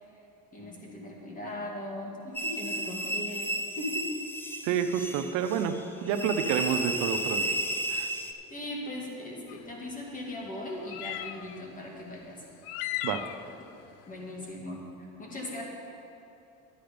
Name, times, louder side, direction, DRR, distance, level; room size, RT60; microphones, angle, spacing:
voice 1, 0.5-4.1 8.5-12.4 14.1-14.8 15.2-15.6, left 1 dB, 25° left, -2 dB, 2.1 m, -39 dB
sound 1, 2.3-8.3, right 1 dB, 5° left, 0.5 m, -33 dB
voice 2, 4.6-7.5 7.9-8.1 13.0-13.3, right 8 dB, 70° right, 8 dB, 0.7 m, -29 dB
sound 2, 9.5-9.6 10.8-11.6 12.6-13.5, left 13 dB, 85° left, 0.5 m, -36 dB
11.5 x 8.8 x 5.2 m, 2.9 s
cardioid pair, 135°, 29 cm